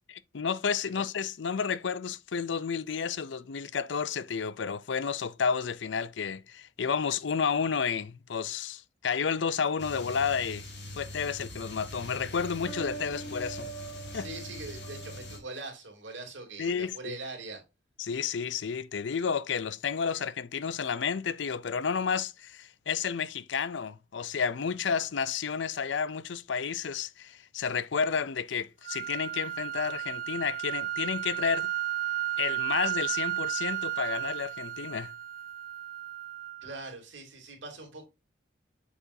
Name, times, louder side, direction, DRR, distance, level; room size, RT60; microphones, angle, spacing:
voice 1, 0.1-10.7 11.0-13.7 14.1-14.3 16.6-17.2 18.0-31.7 32.4-35.1, left 6 dB, 80° left, 0.5 m, -31 dB
sound 1, 9.8-15.4, equal, 65° left, 2.8 m, -41 dB
voice 2, 14.1-17.6 36.6-38.1, right 2 dB, 90° right, 2.9 m, -42 dB
sound 2, 28.8-36.9, right 13 dB, 50° right, 0.3 m, -34 dB
7.1 x 7.0 x 2.7 m
head